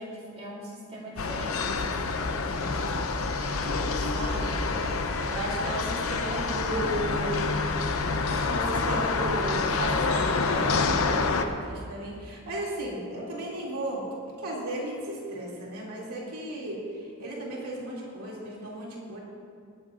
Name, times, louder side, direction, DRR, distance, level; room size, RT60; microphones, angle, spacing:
voice 1, 0.0-4.1, right 1 dB, 30° right, -4 dB, 3.1 m, -43 dB
sound 1, 1.2-11.5, left 4 dB, 70° left, 0.8 m, -27 dB
voice 2, 4.0-4.7 5.3-7.4 7.7-14.0 14.4-16.8 17.2-19.2, right 1 dB, 90° right, -4 dB, 2.6 m, -35 dB
18.5 x 12.5 x 2.5 m, 2.3 s
head